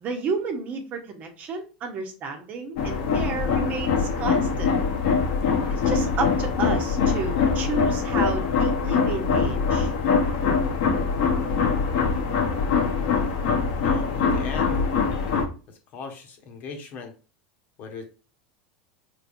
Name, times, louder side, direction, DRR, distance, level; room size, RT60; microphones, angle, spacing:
voice 1, 0.0-4.7 5.8-9.9, right 4 dB, 40° right, 5 dB, 1.0 m, -31 dB
sound 1, 2.8-15.4, left 5 dB, 65° left, 1.1 m, -23 dB
voice 2, 13.8-14.8 15.7-17.1 17.8-18.1, left 4 dB, 45° left, 4 dB, 1.2 m, -38 dB
4.3 x 3.4 x 2.6 m, 0.35 s
supercardioid pair, 115°, 4 cm